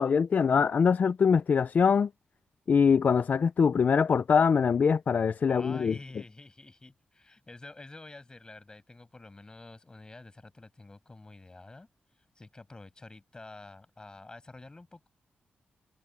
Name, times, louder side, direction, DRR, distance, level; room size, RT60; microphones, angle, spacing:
voice 1, 0.0-2.1 2.7-6.0, left 6 dB, 50° left, 0.5 m, -23 dB
voice 2, 5.5-11.9 12.4-15.1, left 2 dB, 25° left, 7.5 m, -48 dB
wide cardioid pair, 105°, 3 cm